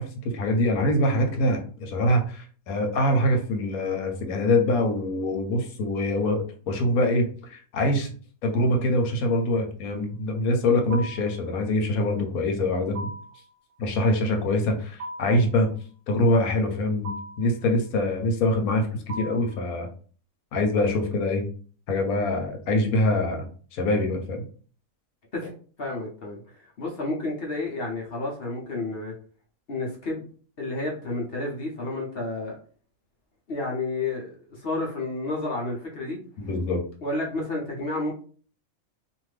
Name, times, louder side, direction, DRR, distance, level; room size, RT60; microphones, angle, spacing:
voice 1, 0.0-8.1 8.4-13.1 13.8-15.7 16.1-19.9 20.5-21.4 21.9-24.5 36.4-36.8, left 1 dB, 90° left, 3 dB, 1.2 m, -24 dB
sound 1, 10.9-11.4 12.9-13.4 15.0-15.5 17.0-17.5 19.1-19.6, right 1 dB, 75° right, 0.4 m, -37 dB
voice 2, 25.8-29.1 29.7-30.2 30.6-32.6 33.5-36.2 37.0-38.1, left 2 dB, 50° left, -2 dB, 0.9 m, -31 dB
2.6 x 2.6 x 3.2 m, 0.43 s
omnidirectional pair, 1.5 m